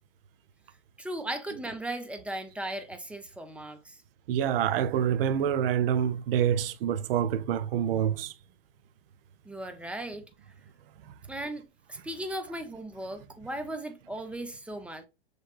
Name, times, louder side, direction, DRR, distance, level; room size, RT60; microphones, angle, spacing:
voice 1, 1.0-4.0 9.4-10.2 11.3-15.1, right 1 dB, 5° right, 0.5 m, -37 dB
voice 2, 4.3-8.3 11.0-11.1, right 9 dB, 60° right, 0.6 m, -27 dB
6.3 x 3.2 x 2.3 m
hypercardioid pair, 115°, 32 cm